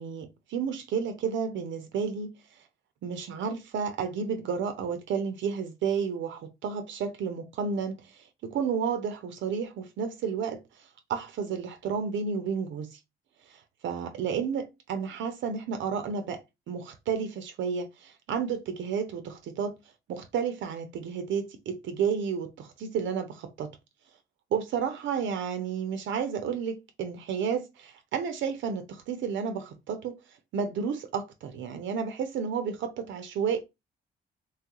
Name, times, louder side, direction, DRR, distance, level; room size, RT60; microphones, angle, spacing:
voice 1, 0.0-2.3 3.0-13.0 13.5-19.8 20.1-23.7 24.5-30.2 30.5-33.6, right 6 dB, 70° right, 0.5 m, -31 dB
3.1 x 2.3 x 2.9 m
cardioid pair, 90°, 20 cm